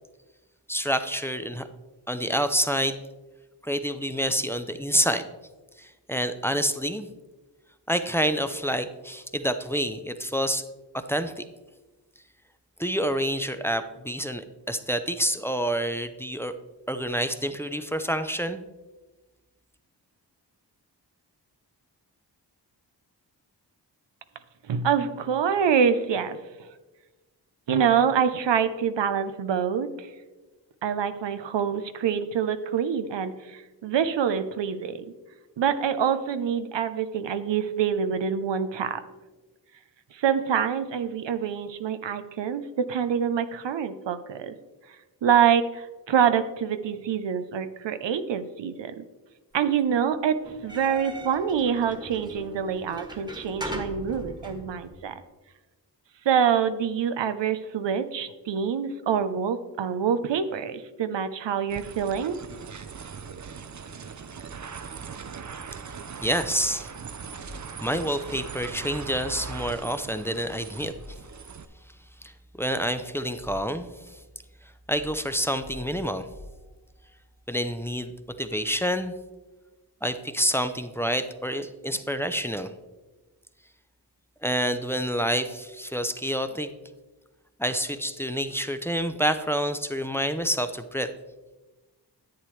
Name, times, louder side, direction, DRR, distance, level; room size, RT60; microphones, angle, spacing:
voice 1, 0.7-1.6 2.1-3.0 3.6-5.2 5.8-7.1 7.9-10.6 10.9-11.4 12.8-16.6 16.9-18.6 66.2-66.9 67.8-70.9 72.2-72.3 72.6-74.2 74.9-76.2 77.5-78.1 78.4-79.1 80.0-82.7 84.4-86.7 87.6-91.1, equal, 5° left, 9 dB, 0.6 m, -28 dB
voice 2, 24.7-26.7 27.7-30.1 30.8-35.0 35.6-39.0 40.1-44.5 45.2-49.0 49.5-55.1 56.2-62.4, right 7 dB, 90° right, 10 dB, 0.7 m, -26 dB
sound 1, 50.4-55.0, equal, 10° right, 1.4 m, -39 dB
sound 2, 61.7-71.7, right 6 dB, 45° right, 0.6 m, -40 dB
sound 3, 67.4-68.3 70.9-71.8 72.7-74.0 74.9-77.2, left 1 dB, 50° left, 1.5 m, -48 dB
10.5 x 8.5 x 3.2 m, 1.2 s
cardioid pair, 55°, 42 cm